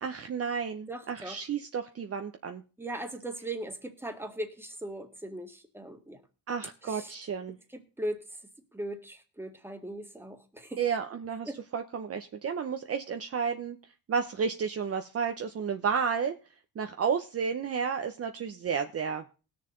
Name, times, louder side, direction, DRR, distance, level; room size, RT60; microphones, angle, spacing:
voice 1, 0.0-2.6 6.5-7.5 10.8-13.8 14.1-16.3 16.8-19.2, right 6 dB, 35° right, 6 dB, 0.9 m, -32 dB
voice 2, 0.9-1.4 2.8-6.2 6.8-7.1 7.7-8.2 8.7-10.8 11.4-11.6, right 1 dB, 5° right, 6 dB, 1.8 m, -39 dB
19.0 x 6.8 x 3.9 m, 0.33 s
cardioid pair, 105°, 39 cm